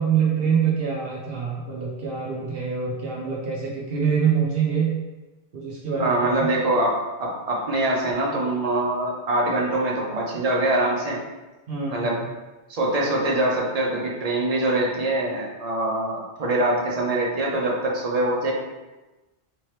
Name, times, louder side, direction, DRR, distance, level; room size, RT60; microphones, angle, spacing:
voice 1, 0.0-4.9 5.5-6.5 11.7-12.2, right 6 dB, 70° right, -4 dB, 0.9 m, -25 dB
voice 2, 6.0-11.2 11.9-12.2 12.7-18.5, right 1 dB, 40° right, -2 dB, 0.8 m, -24 dB
3.5 x 2.9 x 3.2 m, 1.1 s
omnidirectional pair, 1.1 m